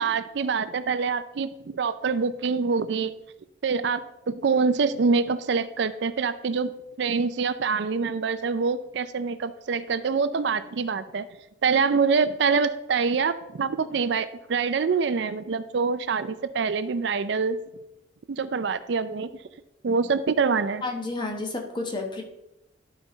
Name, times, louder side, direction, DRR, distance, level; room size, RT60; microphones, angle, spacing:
voice 1, 0.0-3.1 3.6-4.0 4.3-6.7 7.0-11.3 11.6-17.6 18.3-19.3 19.8-20.8, right 5 dB, 60° right, 13 dB, 0.4 m, -25 dB
voice 2, 20.8-22.2, left 2 dB, 25° left, 2 dB, 1.2 m, -31 dB
11.5 x 5.2 x 4.0 m, 0.90 s
head